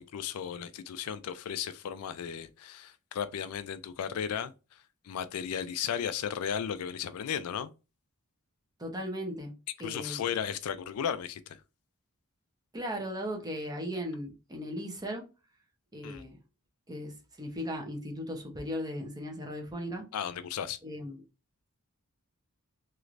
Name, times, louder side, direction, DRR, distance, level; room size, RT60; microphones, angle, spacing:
voice 1, 0.0-7.7 9.8-11.6 16.0-16.2 20.1-20.8, left 8 dB, 80° left, 0.4 m, -35 dB
voice 2, 8.8-9.5 9.8-10.2 12.7-15.2 15.9-16.4 16.9-20.1 20.8-21.2, equal, 20° right, 0.8 m, -37 dB
3.2 x 3.0 x 2.5 m
head